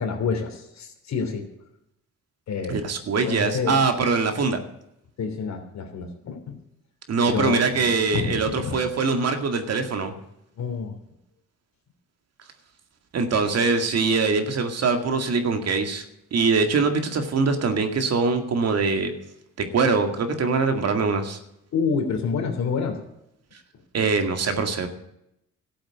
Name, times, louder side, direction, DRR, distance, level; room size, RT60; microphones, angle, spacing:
voice 1, 0.0-1.5 2.5-2.9 3.2-3.8 5.2-6.5 7.3-7.9 8.1-8.8 10.6-11.0 21.7-23.0, left 5 dB, 65° left, 5 dB, 3.1 m, -28 dB
voice 2, 2.7-4.6 7.1-10.1 13.1-16.0 16.3-19.1 19.7-21.4 23.9-24.9, right 4 dB, 55° right, 7 dB, 2.1 m, -23 dB
13.5 x 7.8 x 9.6 m, 0.80 s
cardioid pair, 90°, 30 cm